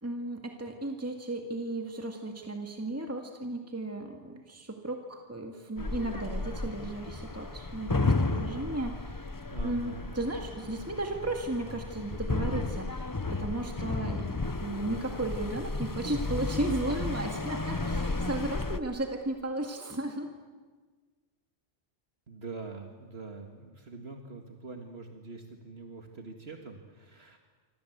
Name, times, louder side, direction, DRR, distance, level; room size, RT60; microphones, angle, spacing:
voice 1, 0.0-9.3 9.6-20.3, right 2 dB, 15° right, 3 dB, 2.0 m, -35 dB
sound 1, 5.8-18.8, left 3 dB, 20° left, 0.8 m, -33 dB
voice 2, 9.5-10.1 22.3-27.4, right 3 dB, 70° right, 3 dB, 2.2 m, -44 dB
26.5 x 26.0 x 8.1 m, 1.5 s
omnidirectional pair, 1.1 m